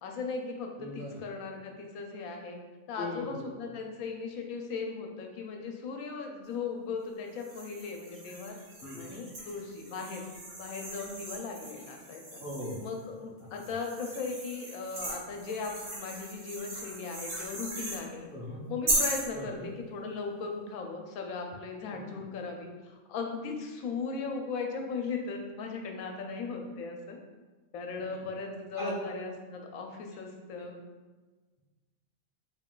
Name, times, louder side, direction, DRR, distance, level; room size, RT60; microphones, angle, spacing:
voice 1, 0.0-2.6 2.9-8.6 9.0-10.2 10.6-12.4 12.8-18.3 18.7-27.2 27.7-30.8, left 4 dB, 85° left, 2 dB, 1.0 m, -38 dB
voice 2, 0.8-1.2 3.0-3.5 8.8-9.1 12.4-12.8 18.3-18.6 19.3-19.7 28.7-29.0 30.6-30.7, left 1 dB, 50° left, -7 dB, 0.6 m, -38 dB
sound 1, 7.4-12.9 13.5-18.0 18.9-19.3, right 1 dB, 65° right, 1.3 m, -37 dB
3.5 x 2.3 x 3.6 m, 1.3 s
omnidirectional pair, 1.4 m